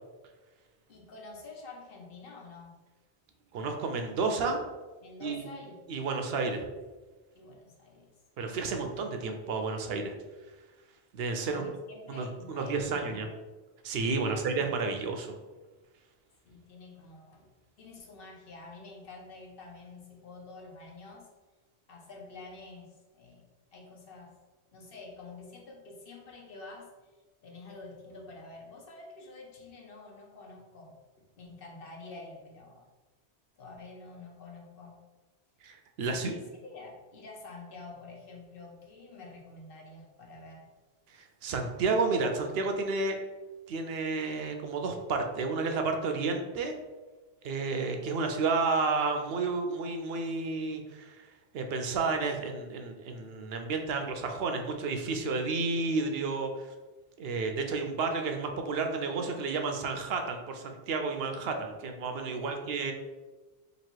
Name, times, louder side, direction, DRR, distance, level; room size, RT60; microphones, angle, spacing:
voice 1, 0.9-2.7 5.0-5.8 7.3-8.1 11.4-13.3 14.2-14.7 16.4-17.5 17.8-21.3 21.9-23.4 23.7-24.3 24.7-27.2 27.4-30.9 31.4-32.9 33.6-35.0 36.1-40.7 62.3-62.7, left 3 dB, 60° left, -1 dB, 0.9 m, -48 dB
voice 2, 3.5-4.6 5.2-5.5 5.9-6.7 8.4-10.1 11.1-11.6 12.1-13.3 13.8-15.4 35.6-36.3 41.1-43.2 43.7-46.7 47.4-51.3 51.5-56.7 57.2-62.9, right 4 dB, 70° right, 5 dB, 0.7 m, -31 dB
3.0 x 2.8 x 4.4 m, 1.2 s
omnidirectional pair, 1.1 m